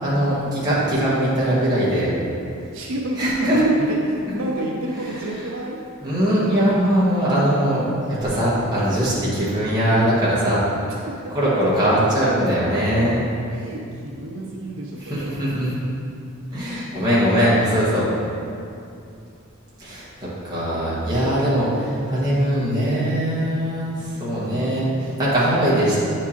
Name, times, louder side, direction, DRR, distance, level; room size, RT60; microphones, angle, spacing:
voice 1, 0.0-2.1 3.2-3.6 6.0-10.6 11.3-13.2 15.1-15.7 16.5-18.0 19.8-20.0 20.4-26.0, equal, 20° right, -9 dB, 1.4 m, -21 dB
voice 2, 2.7-5.8 10.9-11.7 13.5-15.4, right 1 dB, 65° right, -1 dB, 0.5 m, -31 dB
8.2 x 4.6 x 2.9 m, 2.5 s
head